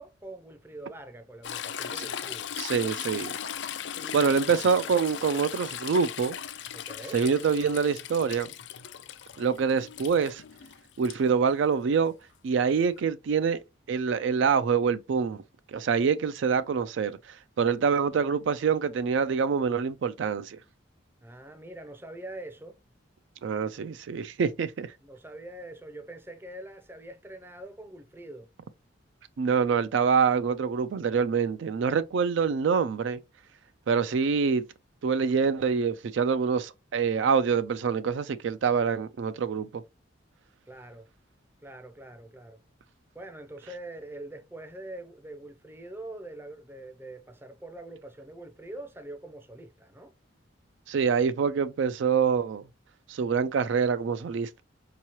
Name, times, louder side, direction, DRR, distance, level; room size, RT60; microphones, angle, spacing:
voice 1, 0.0-2.5 4.0-4.3 6.7-7.2 21.2-22.8 25.0-28.5 40.7-41.1 41.6-42.6 43.1-50.1, right 1 dB, 10° right, 0.5 m, -44 dB
Toilet flush / Trickle dribble, 1.4-11.2 13.0-13.1, left 9 dB, 60° left, 0.4 m, -38 dB
voice 2, 2.6-3.4 4.1-6.4 7.1-8.5 9.4-10.4 11.0-12.1 12.4-13.6 13.9-15.4 15.7-20.6 23.4-24.9 29.4-33.2 33.9-34.6 35.0-39.8 50.9-52.6 53.1-54.6, right 6 dB, 70° right, 0.3 m, -25 dB
4.6 x 2.9 x 2.9 m
head